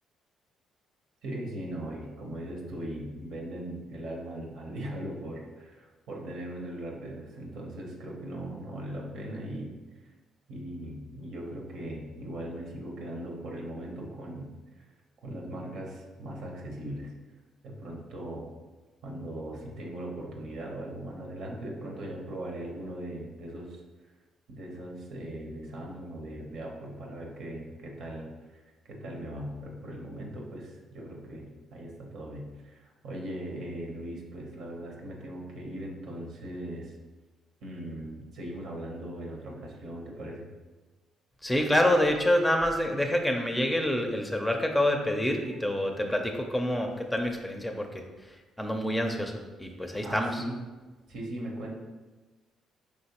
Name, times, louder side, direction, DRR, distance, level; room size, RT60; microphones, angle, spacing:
voice 1, 1.2-9.7 10.5-14.5 14.8-14.9 15.2-17.1 17.6-18.5 19.0-23.8 24.5-36.9 37.6-40.5 50.0-50.6 51.1-51.8, right 1 dB, 70° right, -1 dB, 0.9 m, -39 dB
voice 2, 41.4-48.0 48.6-49.3 49.6-50.4, left 1 dB, 10° left, 3 dB, 0.6 m, -27 dB
4.9 x 3.0 x 2.9 m, 1.2 s
supercardioid pair, 75°, 0 cm